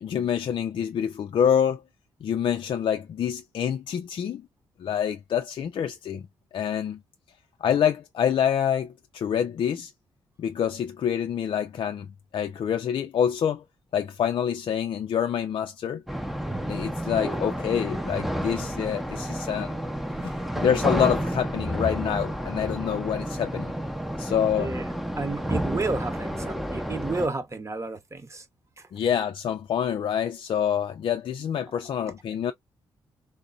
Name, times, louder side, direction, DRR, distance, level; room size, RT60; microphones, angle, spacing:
voice 1, 0.0-1.8 2.2-4.4 4.8-6.2 6.5-7.0 7.6-9.9 10.4-12.1 12.3-13.6 13.9-16.0 16.7-19.8 20.2-23.7 24.2-24.7 28.9-32.5, left 8 dB, 55° left, 0.4 m, -26 dB
sound 1, 16.1-27.3, equal, ahead, 0.7 m, -30 dB
voice 2, 24.6-24.9 25.2-28.4, right 3 dB, 30° right, 1.0 m, -31 dB
3.7 x 2.1 x 2.4 m
hypercardioid pair, 45°, 10 cm